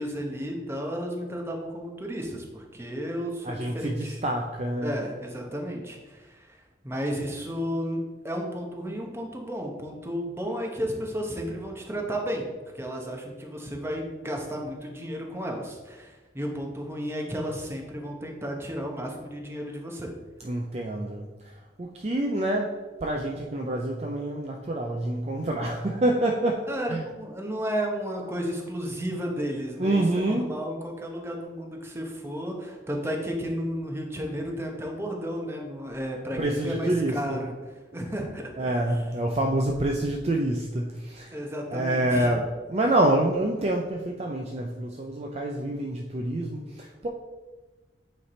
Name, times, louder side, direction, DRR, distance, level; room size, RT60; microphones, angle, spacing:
voice 1, 0.0-4.2 4.8-12.5 12.7-20.1 26.7-37.5 37.9-39.0 41.3-42.4, equal, 15° right, 0 dB, 1.0 m, -33 dB
voice 2, 3.4-4.9 20.4-21.3 21.8-27.0 29.8-30.5 36.4-37.4 38.6-41.4 41.7-47.1, right 1 dB, 35° right, 1 dB, 0.5 m, -27 dB
8.4 x 3.3 x 4.2 m, 1.2 s
head